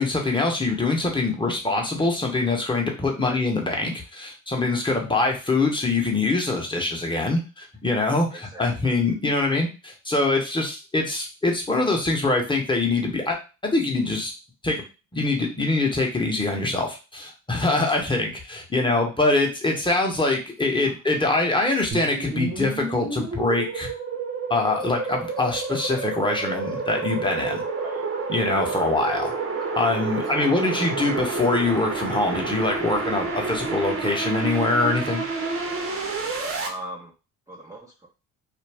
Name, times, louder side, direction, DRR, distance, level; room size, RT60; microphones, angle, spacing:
voice 1, 0.0-14.3 14.6-14.8 15.1-23.9 24.5-27.6 28.3-29.3 29.7-35.2, left 2 dB, 15° left, 1 dB, 0.9 m, -24 dB
voice 2, 8.3-8.9 20.8-21.0 27.8-28.0 28.7-28.9 30.3-30.7 36.6-37.1 37.5-38.1, right 1 dB, 10° right, -3 dB, 0.5 m, -39 dB
sound 1, 21.9-36.7, right 4 dB, 35° right, 0.8 m, -29 dB
2.5 x 2.1 x 3.3 m, 0.31 s
supercardioid pair, 75°, 37 cm